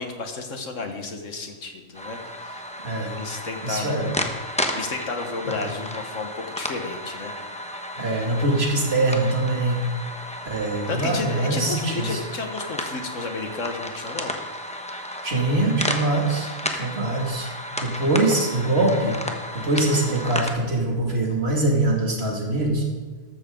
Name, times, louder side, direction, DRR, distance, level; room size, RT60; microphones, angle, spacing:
voice 1, 0.0-2.7 3.0-4.1 4.7-7.4 10.9-14.3, left 3 dB, 70° left, 5 dB, 1.7 m, -32 dB
sound 1, 1.9-20.5, left 1 dB, 5° left, 1.0 m, -33 dB
voice 2, 3.6-4.1 5.6-5.7 8.0-9.8 10.5-12.2 15.2-17.5 17.8-19.2 19.5-22.9, right 2 dB, 50° right, 0 dB, 2.5 m, -23 dB
14.0 x 13.0 x 3.8 m, 1.4 s
omnidirectional pair, 1.4 m